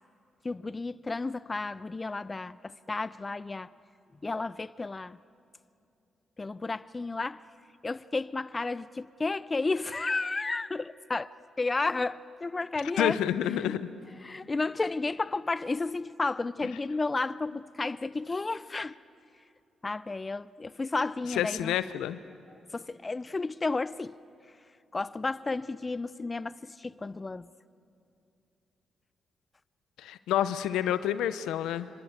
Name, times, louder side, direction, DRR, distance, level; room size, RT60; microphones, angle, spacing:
voice 1, 0.4-3.7 4.2-5.2 6.4-7.4 7.8-11.3 11.6-13.2 13.6-13.8 14.2-18.9 19.8-21.7 22.7-24.2 24.9-27.5, left 3 dB, 30° left, 0.6 m, -32 dB
voice 2, 13.0-13.9 21.3-22.2 30.0-31.9, left 11 dB, 90° left, 0.7 m, -29 dB
25.5 x 23.5 x 8.0 m
supercardioid pair, 60°, 0 cm